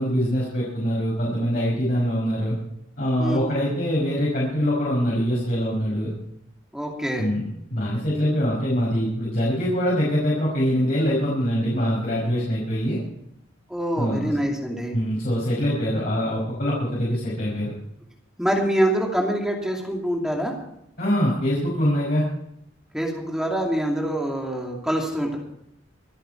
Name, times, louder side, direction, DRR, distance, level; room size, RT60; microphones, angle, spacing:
voice 1, 0.0-2.5 3.0-6.1 7.2-7.4 7.7-13.0 14.0-14.3 14.9-17.7 21.0-22.3, equal, 50° left, -6 dB, 5.5 m, -23 dB
voice 2, 6.7-7.3 13.7-15.0 18.4-20.5 22.9-25.4, right 1 dB, 5° right, 0 dB, 2.5 m, -25 dB
26.0 x 9.1 x 4.6 m, 0.80 s
head